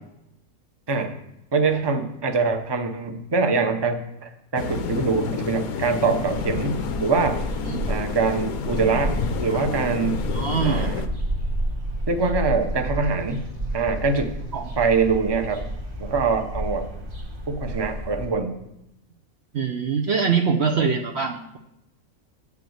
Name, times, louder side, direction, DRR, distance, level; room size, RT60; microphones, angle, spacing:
voice 1, 1.5-7.4 7.9-10.3 10.6-11.0 12.1-13.4 13.7-14.3 14.8-15.6 16.0-16.9 17.5-18.5 20.6-20.9, right 4 dB, 20° right, 6 dB, 0.8 m, -24 dB
sound 1, 4.6-11.1, left 5 dB, 90° left, 1.3 m, -29 dB
sound 2, 6.2-18.2, right 1 dB, 70° right, 2.2 m, -31 dB
voice 2, 10.3-10.9 14.5-14.7 19.5-21.6, right 5 dB, 55° right, 4 dB, 0.9 m, -24 dB
7.8 x 7.1 x 8.1 m, 0.86 s
omnidirectional pair, 1.5 m